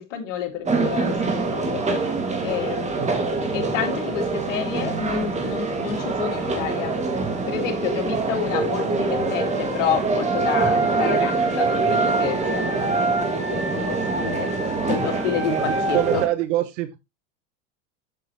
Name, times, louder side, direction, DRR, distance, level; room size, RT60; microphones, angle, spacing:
voice 1, 0.0-1.8 2.4-6.9 7.4-14.5 14.8-16.0, left 9 dB, 80° left, 2.3 m, -29 dB
sound 1, 0.7-16.3, right 3 dB, 20° right, 2.1 m, -24 dB
voice 2, 15.5-17.0, right 14 dB, 75° right, 0.9 m, -25 dB
7.7 x 6.7 x 3.1 m
supercardioid pair, 115°, 36 cm